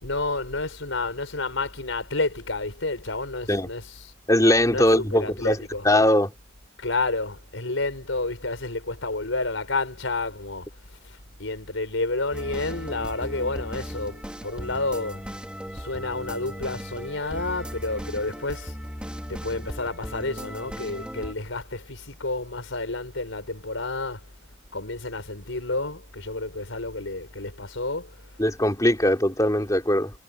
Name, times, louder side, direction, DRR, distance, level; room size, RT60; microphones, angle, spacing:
voice 1, 0.0-4.1 4.7-5.8 6.8-10.7 11.4-15.2 15.7-18.7 19.3-24.2 24.7-28.1, left 2 dB, 90° left, 4.9 m, -30 dB
voice 2, 4.3-5.6 5.8-6.3 28.4-30.1, left 1 dB, 15° left, 4.0 m, -20 dB
sound 1, 12.3-21.3, equal, 5° right, 3.1 m, -37 dB
head